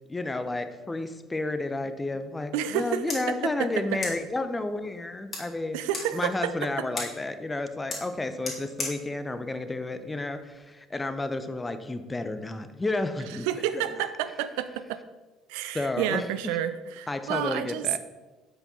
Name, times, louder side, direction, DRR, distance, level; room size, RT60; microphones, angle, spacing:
voice 1, 0.1-5.8 6.1-13.5 13.7-13.8 15.7-16.3 17.1-18.0, left 2 dB, 15° left, 10 dB, 0.7 m, -31 dB
voice 2, 2.5-3.0 3.4-3.7 5.7-6.5 13.4-15.0 15.5-17.9, right 10 dB, 65° right, 12 dB, 0.3 m, -30 dB
sound 1, 3.0-10.7, left 3 dB, 35° left, 2.4 m, -41 dB
8.0 x 5.8 x 4.1 m, 1.2 s
figure-of-eight pair, 55°, 0 cm